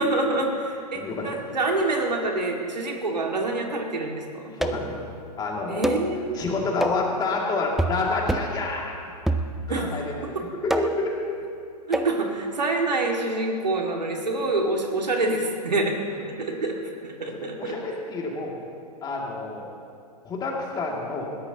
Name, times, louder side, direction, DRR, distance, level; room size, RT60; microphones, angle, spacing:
voice 1, 0.0-4.5 5.7-6.4 9.7-10.4 11.9-16.0 16.4-17.8, right 2 dB, 90° right, 1 dB, 2.2 m, -26 dB
voice 2, 0.9-1.3 4.5-5.0 5.4-6.0 6.3-8.9 9.8-10.3 10.6-11.1 17.3-18.6 19.0-19.7 20.2-21.3, left 3 dB, 20° left, -2 dB, 2.6 m, -28 dB
sound 1, 4.6-5.0 5.8-6.1 6.8-7.1 7.8-8.0 8.3-8.6 9.3-9.8 10.7-11.1 11.9-12.2, right 1 dB, ahead, 0.4 m, -26 dB
21.0 x 16.0 x 3.0 m, 2.3 s
hypercardioid pair, 125°, 21 cm